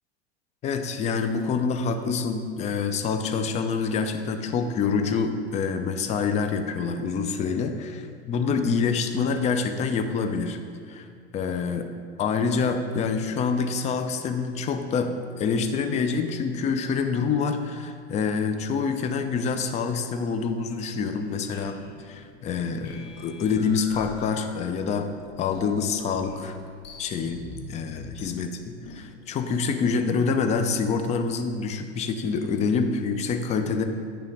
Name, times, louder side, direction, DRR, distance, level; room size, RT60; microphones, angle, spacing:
voice 1, 0.6-10.6 10.9-11.1 11.3-11.9 12.2-21.8 22.0-25.1 25.4-26.6 27.0-33.8, left 5 dB, 20° left, 7 dB, 0.4 m, -26 dB
sound 1, 21.1-29.0, left 4 dB, 60° left, 1.1 m, -44 dB
8.9 x 3.4 x 5.1 m, 2.2 s
hypercardioid pair, 100°, 33 cm